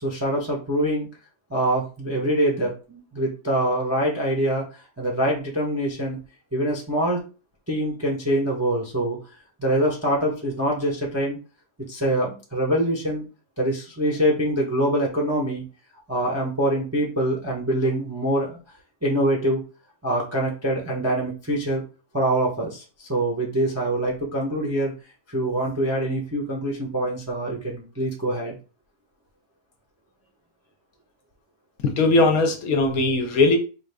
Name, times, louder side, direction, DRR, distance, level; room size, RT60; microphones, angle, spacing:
voice 1, 0.0-1.1 1.5-6.2 6.5-7.2 7.7-9.2 9.6-11.4 11.9-13.2 13.6-15.6 16.1-18.6 19.0-19.6 20.0-21.8 22.1-24.9 25.3-28.5, right 1 dB, 15° right, 0.5 m, -24 dB
voice 2, 31.8-33.6, left 2 dB, 65° left, 1.0 m, -19 dB
4.6 x 2.4 x 3.4 m
omnidirectional pair, 1.7 m